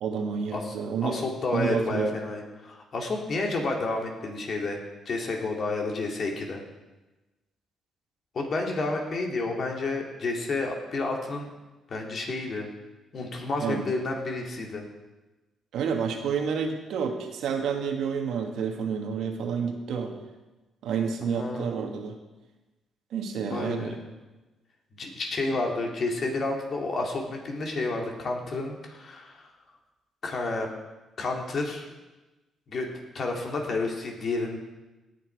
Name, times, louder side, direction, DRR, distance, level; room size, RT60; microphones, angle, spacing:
voice 1, 0.0-1.2 1.5-2.1 13.6-13.9 15.7-20.1 20.8-22.1 23.1-23.9, right 6 dB, 80° right, 3 dB, 1.6 m, -29 dB
voice 2, 1.0-4.8 5.1-6.6 8.3-11.5 11.9-12.7 13.1-14.8 21.3-21.8 23.5-23.9 25.0-29.5 30.2-30.7 31.2-31.9 32.7-32.9 33.1-34.6, left 3 dB, 50° left, 1 dB, 2.7 m, -30 dB
18.5 x 7.3 x 4.7 m, 1.1 s
cardioid pair, 90°, 0 cm